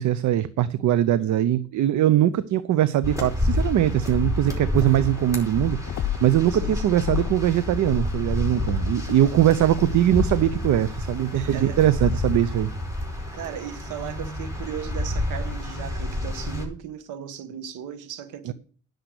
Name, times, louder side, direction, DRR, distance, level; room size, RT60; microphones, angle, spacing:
voice 1, 0.0-12.7 18.5-18.6, right 12 dB, 70° right, 0.7 m, -21 dB
sound 1, 3.0-16.6, left 1 dB, 10° right, 4.9 m, -29 dB
sound 2, 5.9-7.5 7.8-10.6, left 13 dB, 65° left, 0.6 m, -32 dB
voice 2, 6.5-6.9 11.3-12.1 13.3-18.5, right 9 dB, 90° right, 1.3 m, -37 dB
10.5 x 6.7 x 7.9 m
cardioid pair, 90°, 30 cm